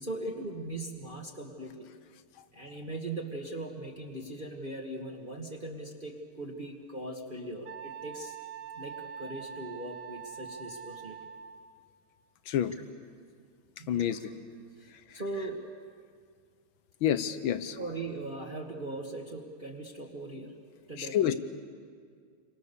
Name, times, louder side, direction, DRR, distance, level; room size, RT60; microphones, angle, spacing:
voice 1, 0.0-1.9 2.5-8.4 8.8-11.2 13.8-14.3 14.8-15.6 17.8-20.5 20.9-21.3, right 2 dB, 25° right, -1 dB, 1.7 m, -40 dB
Wind instrument woodwind instrument, 7.6-11.7, right 7 dB, 75° right, 1.9 m, -44 dB
voice 2, 13.9-14.2 17.0-17.8 21.0-21.3, left 10 dB, 70° left, 12 dB, 1.8 m, -28 dB
30.0 x 24.5 x 6.9 m, 2.1 s
omnidirectional pair, 2.3 m